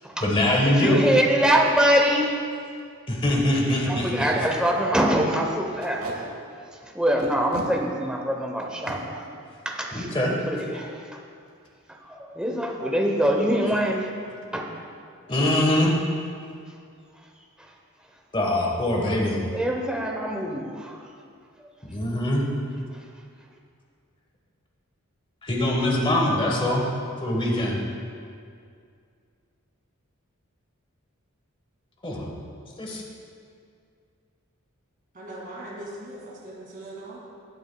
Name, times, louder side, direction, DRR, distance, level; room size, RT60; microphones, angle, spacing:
voice 1, 0.2-1.1 3.1-4.3 9.9-10.3 15.3-15.9 18.3-19.4 21.8-22.5 25.4-26.8 27.2-27.8 32.0-32.3 32.8-33.0, left 1 dB, 25° left, -1 dB, 1.2 m, -23 dB
voice 2, 0.7-2.4 3.9-6.1 6.9-9.2 9.6-10.1 10.3-11.2 12.1-14.1 14.5-14.7 15.4-15.7 17.6-17.7 19.5-21.1, equal, 5° right, 1 dB, 0.8 m, -24 dB
Packing tape duct tape, 2.1-2.3 2.8-2.9 3.1-3.3 3.7-3.8 4.1-4.3 4.6-4.8 5.8-6.2 7.2-7.7 8.6-9.0 10.5-10.7 11.1-11.2 11.5-11.9, right 2 dB, 85° right, 1.4 m, -38 dB
voice 3, 35.1-37.2, right 1 dB, 40° right, -5 dB, 2.3 m, -39 dB
15.0 x 8.7 x 2.2 m, 2.3 s
head